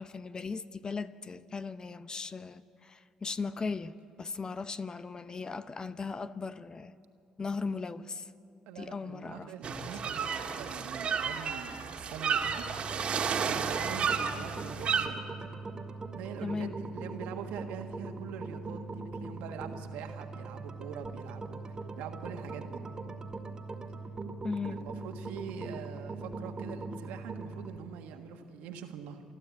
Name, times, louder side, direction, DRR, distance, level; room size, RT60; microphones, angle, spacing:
voice 1, 0.0-6.9 7.4-8.3 8.8-9.8 16.4-16.8 24.4-24.8, left 4 dB, 35° left, 0.8 m, -38 dB
voice 2, 8.7-12.6 13.4-15.2 16.1-22.8 24.6-29.2, right 8 dB, 80° right, 1.6 m, -44 dB
sound 1, 9.6-15.1, right 6 dB, 55° right, 1.7 m, -32 dB
sound 2, 12.4-27.8, right 3 dB, 30° right, 2.0 m, -41 dB
28.5 x 12.0 x 8.5 m
supercardioid pair, 60°, 2 cm